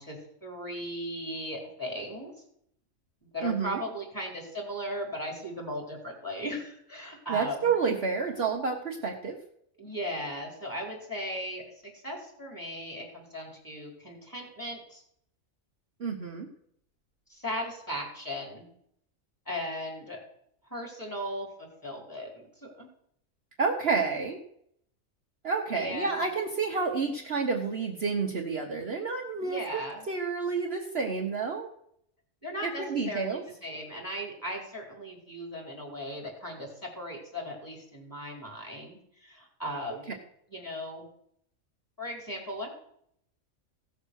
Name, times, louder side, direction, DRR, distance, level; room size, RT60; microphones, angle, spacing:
voice 1, 0.0-2.3 3.3-7.7 9.8-11.6 12.0-15.0 17.3-18.7 19.5-20.2 20.7-22.9 25.7-26.3 29.4-30.1 32.4-40.1 40.5-41.1 42.0-42.7, equal, 15° left, 0 dB, 4.2 m, -37 dB
voice 2, 3.4-3.8 7.3-9.4 16.0-16.5 23.6-24.4 25.4-31.7 32.6-33.4, right 5 dB, 50° right, 1 dB, 1.3 m, -29 dB
16.5 x 6.6 x 6.4 m, 0.70 s
omnidirectional pair, 1.4 m